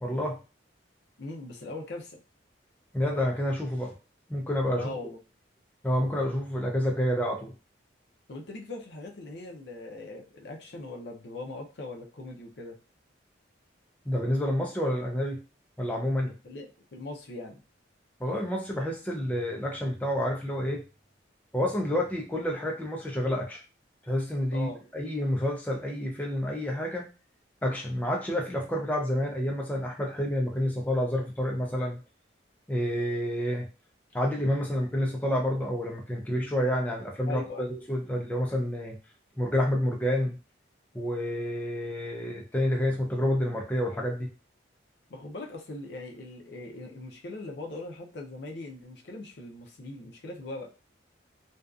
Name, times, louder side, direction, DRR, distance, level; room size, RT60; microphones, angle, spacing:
voice 1, 0.0-0.4 2.9-3.9 4.3-4.9 5.8-7.5 14.1-15.4 15.8-16.3 18.2-20.8 21.5-23.6 24.1-27.1 27.6-32.0 32.7-33.7 34.1-38.9 39.4-40.4 40.9-44.3, equal, 10° left, -1 dB, 0.3 m, -29 dB
voice 2, 1.2-2.2 4.7-5.2 8.3-12.7 16.4-17.6 24.5-24.8 37.2-37.7 45.1-50.7, left 2 dB, 60° left, 2 dB, 0.5 m, -40 dB
2.6 x 2.3 x 2.3 m, 0.32 s
head